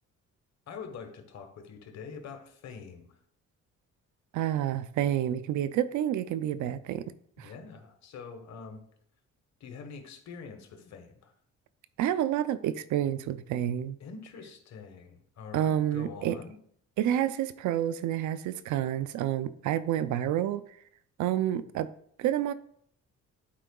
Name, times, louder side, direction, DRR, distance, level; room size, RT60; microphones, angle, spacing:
voice 1, 0.7-3.2 7.4-8.8 9.6-11.3 14.0-16.6, left 5 dB, 65° left, 1.2 m, -45 dB
voice 2, 4.3-7.1 7.4-7.5 12.0-14.0 15.5-16.4 17.0-20.6 21.2-21.9 22.2-22.5, right 11 dB, 75° right, 0.5 m, -29 dB
11.5 x 4.6 x 2.3 m
cardioid pair, 90°, 30 cm